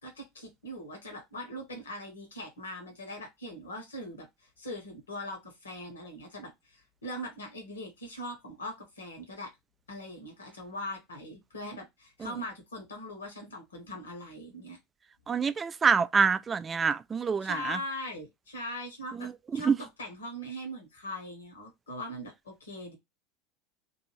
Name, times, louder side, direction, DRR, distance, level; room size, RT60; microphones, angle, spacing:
voice 1, 0.0-4.3 4.6-9.5 9.9-14.8 17.4-19.3 19.5-22.9, left 1 dB, 75° left, 1.2 m, -41 dB
voice 2, 15.3-17.8 19.2-19.8, right 5 dB, 25° right, 0.3 m, -26 dB
2.6 x 2.6 x 2.9 m
figure-of-eight pair, 75°, 0 cm